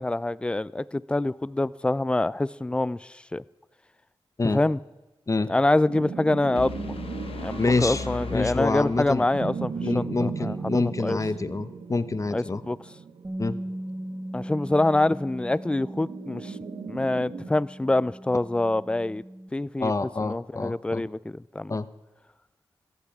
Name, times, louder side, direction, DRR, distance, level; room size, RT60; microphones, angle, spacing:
voice 1, 0.0-3.4 4.5-4.8 5.5-7.0 7.4-10.6 11.0-11.2 12.3-12.8 14.3-16.6 16.9-19.2 19.5-19.9 20.2-21.8, left 2 dB, 10° left, 0.3 m, -25 dB
sound 1, 5.8-17.5, right 5 dB, 80° right, 0.9 m, -37 dB
sound 2, 6.6-9.5, left 5 dB, 80° left, 0.8 m, -37 dB
voice 2, 7.6-8.0 8.3-9.2 9.8-12.6 13.4-13.6 19.8-21.0 21.7-21.9, left 3 dB, 35° left, 0.7 m, -27 dB
Bass guitar, 13.2-19.5, right 1 dB, 25° right, 1.7 m, -39 dB
16.0 x 14.5 x 3.6 m
cardioid pair, 50°, 10 cm